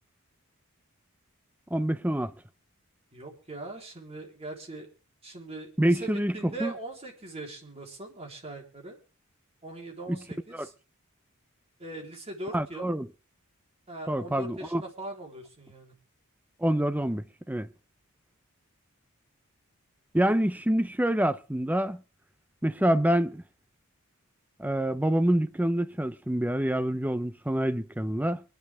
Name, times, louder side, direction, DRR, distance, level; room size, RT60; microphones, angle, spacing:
voice 1, 1.7-2.3 5.8-6.3 6.6-6.7 10.1-10.2 10.5-10.7 12.5-13.1 14.1-14.8 16.6-17.7 20.1-22.0 22.6-23.4 24.6-28.4, right 1 dB, 5° right, 0.6 m, -26 dB
voice 2, 3.1-4.9 5.2-9.0 9.6-10.7 11.8-12.9 13.9-16.0, right 2 dB, 30° right, 3.6 m, -41 dB
24.5 x 10.5 x 3.5 m
head